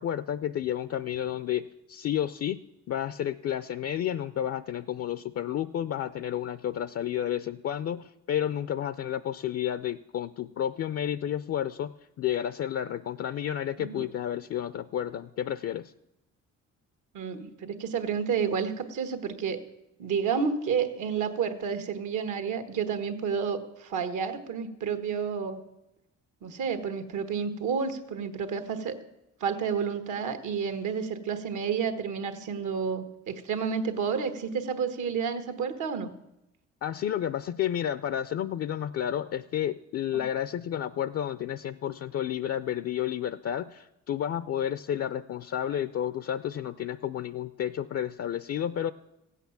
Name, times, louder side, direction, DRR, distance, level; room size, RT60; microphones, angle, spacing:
voice 1, 0.0-2.6 2.9-11.9 12.2-15.9 36.8-48.9, left 10 dB, 55° left, 14 dB, 0.4 m, -31 dB
voice 2, 17.1-19.6 20.0-25.6 26.4-29.0 29.4-36.1 40.1-40.2, right 6 dB, 75° right, 8 dB, 1.5 m, -30 dB
15.0 x 8.3 x 7.1 m, 0.89 s
cardioid pair, 90°, 30 cm